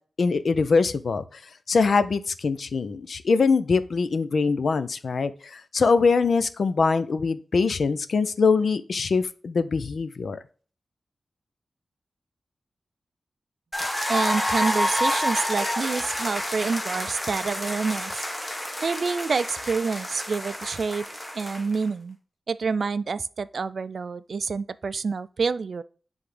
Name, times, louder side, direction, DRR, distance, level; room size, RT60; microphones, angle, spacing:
voice 1, 0.2-1.2 1.7-10.4, left 4 dB, 70° left, 0.5 m, -23 dB
sound 1, 13.7-21.8, left 1 dB, 20° left, 1.2 m, -29 dB
voice 2, 13.8-18.3 18.8-21.0 21.3-22.2 22.5-25.8, right 4 dB, 65° right, 0.3 m, -28 dB
9.8 x 3.5 x 3.3 m
wide cardioid pair, 95°, 0 cm